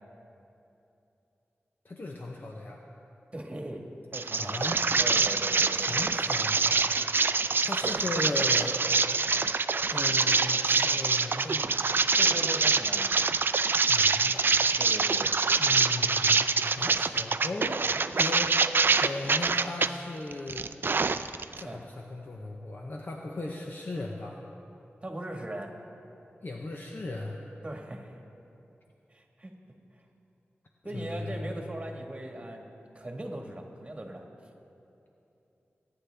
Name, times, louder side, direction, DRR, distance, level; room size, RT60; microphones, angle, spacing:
voice 1, 1.8-2.8 4.4-4.8 5.8-6.8 7.6-8.8 9.9-11.8 13.9-14.5 15.6-16.4 16.8-17.8 18.2-18.7 19.0-20.7 21.6-24.4 26.4-27.4 30.9-31.6, left 2 dB, 50° left, 0 dB, 0.8 m, -37 dB
voice 2, 3.3-3.8 4.1-4.6 5.0-6.1 7.8-8.0 12.2-13.1 14.8-15.4 21.6-21.8 25.0-25.7 27.6-28.1 29.1-29.5 30.8-32.7 32.9-34.2, right 1 dB, 30° right, 2 dB, 1.5 m, -39 dB
sound 1, 4.1-19.9 20.3-21.6, right 4 dB, 55° right, 0.4 m, -25 dB
23.0 x 9.7 x 3.4 m, 2.9 s
wide cardioid pair, 90°, 4 cm